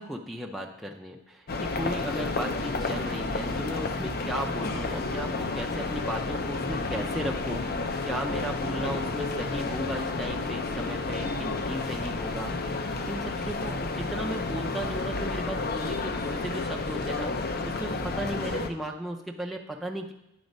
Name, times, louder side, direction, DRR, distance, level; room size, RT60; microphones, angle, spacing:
voice 1, 0.0-20.1, equal, ahead, -1 dB, 0.5 m, -36 dB
sound 1, 1.5-18.7, left 3 dB, 50° left, 0.6 m, -31 dB
9.2 x 4.0 x 5.3 m, 0.87 s
head